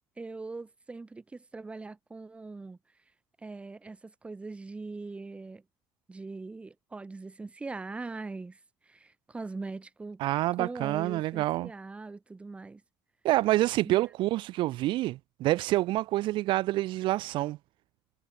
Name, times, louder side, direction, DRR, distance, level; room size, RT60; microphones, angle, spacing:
voice 1, 0.2-2.8 3.4-5.6 6.1-8.6 8.9-10.2 10.6-12.8 13.8-14.1, right 3 dB, 15° right, 2.8 m, -41 dB
voice 2, 10.2-11.7 13.2-17.6, right 16 dB, 65° right, 1.2 m, -27 dB
cardioid pair, 170°, 9 cm